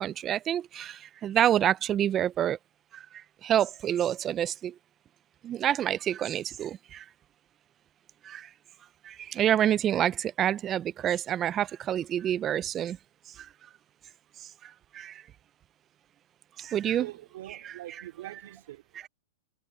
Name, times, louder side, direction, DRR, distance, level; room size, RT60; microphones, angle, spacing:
voice 1, 0.0-2.6 2.9-3.1 3.4-4.7 5.4-7.0 8.2-8.5 9.0-13.0 13.4-13.5 14.6-15.2 16.6-17.1 17.5-18.4, right 10 dB, 25° right, 0.6 m, -28 dB
voice 2, 16.6-19.1, right 14 dB, 65° right, 2.7 m, -44 dB
hypercardioid pair, 125°, 0 cm